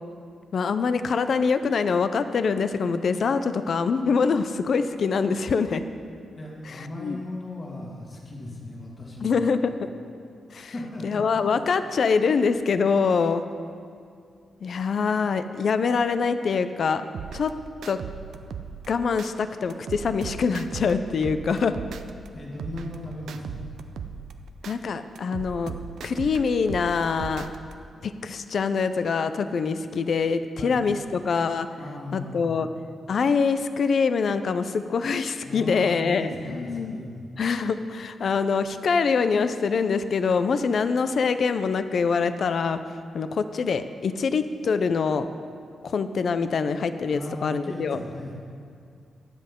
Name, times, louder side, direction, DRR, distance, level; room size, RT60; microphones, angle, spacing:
voice 1, 0.5-5.8 7.0-7.2 9.2-9.9 10.5-10.7 11.0-13.4 14.6-17.1 17.3-17.5 17.9-18.0 18.9-21.8 24.7-25.8 26.0-27.5 28.0-31.7 32.1-32.7 33.1-37.0 37.4-42.8 43.1-45.3 45.8-48.0, left 5 dB, 55° left, 10 dB, 0.5 m, -24 dB
voice 2, 6.4-9.4 10.7-11.4 22.3-23.7 30.6-30.8 31.8-32.6 35.4-37.3 47.1-48.3, left 1 dB, 35° left, -3 dB, 2.1 m, -37 dB
sound 1, 17.1-19.3 19.7-22.3 22.6-24.8 25.2-27.7, right 7 dB, 85° right, 0.5 m, -38 dB
21.5 x 7.7 x 3.7 m, 2.3 s
wide cardioid pair, 135°, 0 cm